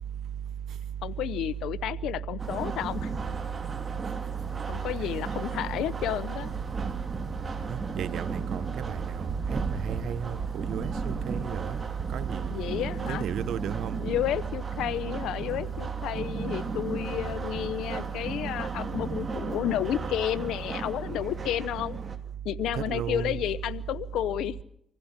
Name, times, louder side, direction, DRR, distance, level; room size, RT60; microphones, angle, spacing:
voice 1, 1.0-3.1 4.7-6.5 12.5-13.3 14.0-22.0 22.4-24.6, left 12 dB, 85° left, 0.9 m, -31 dB
sound 1, 2.4-22.2, right 3 dB, 35° right, 2.7 m, -36 dB
voice 2, 7.7-11.8 12.1-14.0 22.7-23.4, right 9 dB, 75° right, 1.2 m, -33 dB
26.0 x 15.5 x 7.4 m
cardioid pair, 90°, 0 cm